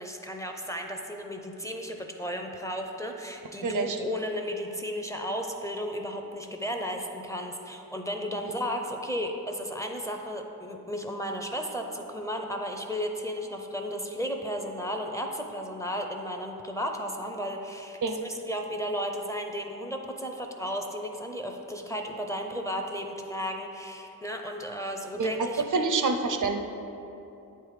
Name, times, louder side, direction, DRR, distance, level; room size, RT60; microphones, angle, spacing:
voice 1, 0.0-25.6, equal, 10° left, 3 dB, 0.6 m, -34 dB
voice 2, 3.6-4.0 18.0-18.2 25.2-25.3 25.7-26.6, right 4 dB, 55° right, 6 dB, 0.5 m, -26 dB
8.3 x 3.4 x 4.8 m, 3.0 s
wide cardioid pair, 45°, 37 cm